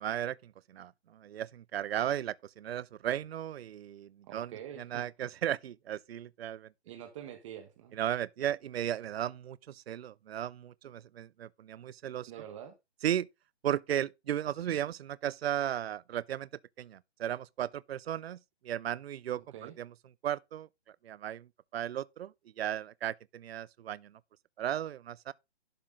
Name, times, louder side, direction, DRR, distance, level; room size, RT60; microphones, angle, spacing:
voice 1, 0.0-4.5 4.8-6.7 7.9-12.3 13.0-13.3 13.6-16.5 16.8-18.4 18.6-19.9 20.2-20.7 21.0-21.5 21.7-24.1 24.6-25.3, right 10 dB, 65° right, 0.5 m, -35 dB
voice 2, 4.3-5.1 6.9-8.0 12.3-12.7 19.5-19.7, right 10 dB, 30° right, 1.3 m, -45 dB
12.0 x 6.1 x 3.8 m
hypercardioid pair, 155°, 33 cm